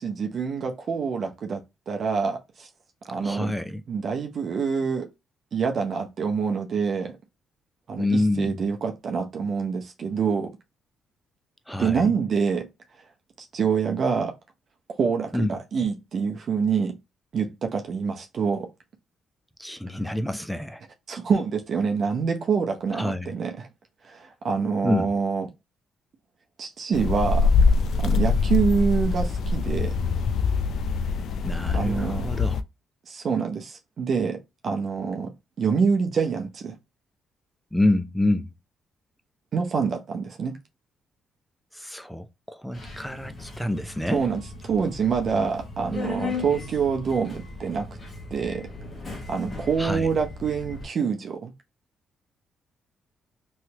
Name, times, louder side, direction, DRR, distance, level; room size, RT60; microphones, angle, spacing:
voice 1, 0.0-1.6 1.9-2.7 3.1-3.5 3.9-5.1 5.5-7.2 7.9-10.5 11.8-12.7 13.4-14.3 15.0-17.0 17.3-18.7 21.1-23.7 24.1-25.5 26.6-27.5 28.0-29.9 31.7-32.3 33.1-36.8 39.5-40.6 44.1-47.9 48.3-48.7 49.3-51.5, right 5 dB, 55° right, 0.7 m, -26 dB
voice 2, 3.2-3.8 8.0-8.6 11.7-12.1 15.3-15.6 19.6-20.8 22.9-23.4 24.8-25.1 31.4-32.6 37.7-38.5 41.7-44.2 49.8-50.1, left 1 dB, 5° left, 0.5 m, -27 dB
sound 1, 26.9-32.6, left 4 dB, 65° left, 0.3 m, -23 dB
Subway metro underground, 42.7-50.8, left 3 dB, 30° left, 1.4 m, -37 dB
3.2 x 2.8 x 2.9 m
cardioid pair, 90°, 0 cm